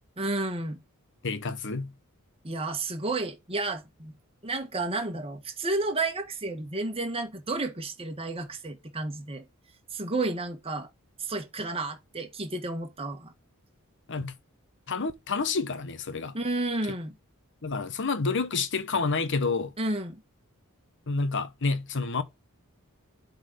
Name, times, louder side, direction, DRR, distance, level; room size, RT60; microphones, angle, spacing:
voice 1, 0.2-0.8 2.4-4.1 4.4-9.4 9.9-10.9 11.2-13.3 16.3-17.2 19.8-20.2, right 2 dB, 25° right, 1.6 m, -31 dB
voice 2, 1.2-1.9 14.1-14.3 14.9-16.4 17.6-19.7 21.1-22.2, left 4 dB, 55° left, 1.1 m, -29 dB
8.0 x 4.1 x 5.0 m
head